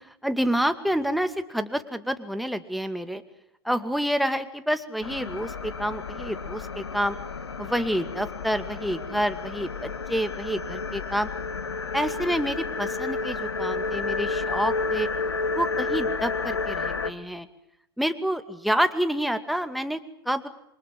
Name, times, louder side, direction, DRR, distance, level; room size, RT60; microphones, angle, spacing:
voice 1, 0.2-3.2 3.6-7.2 7.6-11.3 11.9-15.1 15.5-17.5 18.0-20.0 20.3-20.5, equal, ahead, 9 dB, 2.3 m, -28 dB
sound 1, 5.0-17.1, left 4 dB, 85° left, 1.7 m, -31 dB
28.0 x 23.5 x 7.8 m, 0.78 s
hypercardioid pair, 90°, 13 cm